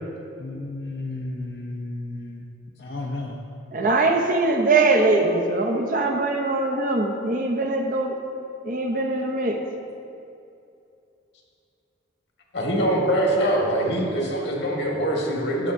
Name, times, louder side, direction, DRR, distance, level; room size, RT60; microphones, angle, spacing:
voice 1, 0.4-2.5 2.8-3.4, left 2 dB, 55° left, -1 dB, 0.5 m, -33 dB
voice 2, 3.7-8.2 8.6-9.6, right 3 dB, 45° right, 3 dB, 0.6 m, -22 dB
voice 3, 12.5-15.7, right 1 dB, 75° left, -1 dB, 1.3 m, -23 dB
12.5 x 5.5 x 2.6 m, 2.6 s
head